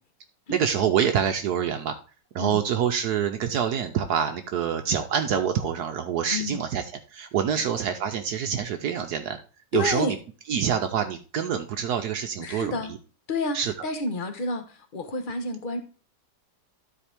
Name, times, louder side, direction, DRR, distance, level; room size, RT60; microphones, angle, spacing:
voice 1, 0.5-1.9 2.3-6.8 7.1-9.4 9.7-10.2 10.5-12.7 13.5-13.7, right 8 dB, 70° right, 6 dB, 1.2 m, -26 dB
voice 2, 6.3-6.6 7.5-7.6 9.7-10.2 12.4-13.0 13.3-15.8, left 2 dB, 35° left, 7 dB, 1.1 m, -30 dB
12.5 x 4.4 x 3.4 m, 0.35 s
omnidirectional pair, 1.9 m